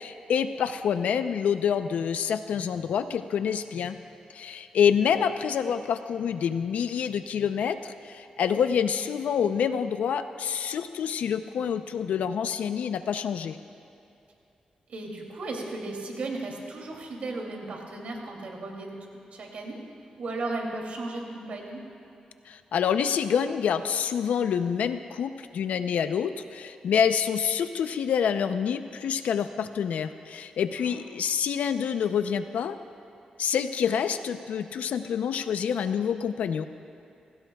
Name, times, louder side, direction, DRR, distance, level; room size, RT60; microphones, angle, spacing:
voice 1, 0.0-4.0 4.3-13.6 22.5-32.8 33.4-36.7, left 7 dB, 90° left, 10 dB, 0.6 m, -27 dB
voice 2, 14.9-19.0 19.3-19.8 20.2-21.8 30.7-31.0, right 2 dB, 75° right, 0 dB, 2.8 m, -35 dB
27.0 x 17.0 x 2.4 m, 2.8 s
cardioid pair, 85°, 2 cm